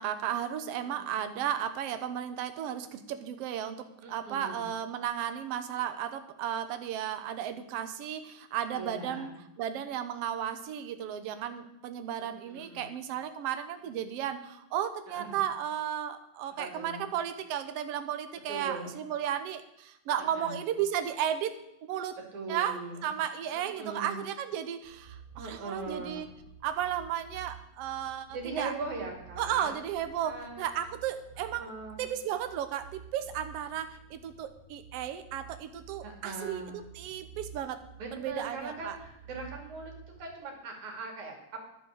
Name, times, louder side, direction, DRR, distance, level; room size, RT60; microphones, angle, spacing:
voice 1, 0.0-9.3 9.6-22.2 22.5-26.3 26.6-28.7 29.4-31.7 32.0-37.8 38.1-39.0, right 10 dB, 65° right, 9 dB, 1.8 m, -34 dB
voice 2, 0.8-1.1 4.0-4.7 8.7-9.3 12.2-13.0 15.1-15.4 16.5-17.0 18.5-18.9 20.2-20.6 22.3-23.1 23.5-24.2 25.4-26.2 28.3-29.8 30.2-30.6 31.6-32.0 36.0-36.8 38.0-39.9 40.2-41.7, right 3 dB, 85° right, 2 dB, 4.0 m, -40 dB
sound 1, 24.8-40.3, right 7 dB, 10° right, 3.0 m, -51 dB
11.0 x 9.9 x 6.5 m, 0.81 s
omnidirectional pair, 3.3 m